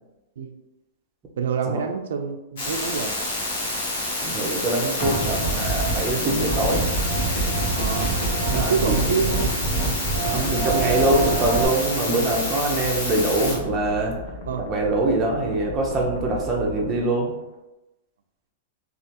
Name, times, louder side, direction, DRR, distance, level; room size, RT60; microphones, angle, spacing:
voice 1, 1.4-3.1 7.7-9.6 14.5-14.6, right 6 dB, 80° right, 6 dB, 0.3 m, -27 dB
sound 1, 2.6-13.6, left 2 dB, 60° left, 1.2 m, -28 dB
voice 2, 4.2-6.8 8.5-9.0 10.3-14.1 14.6-17.3, right 2 dB, 15° right, -1 dB, 0.5 m, -24 dB
sound 2, 5.0-11.6, right 3 dB, 25° left, 1.5 m, -25 dB
sound 3, 11.0-17.5, left 3 dB, 75° left, 0.5 m, -38 dB
3.2 x 2.4 x 2.8 m, 0.98 s
supercardioid pair, 170°, 0 cm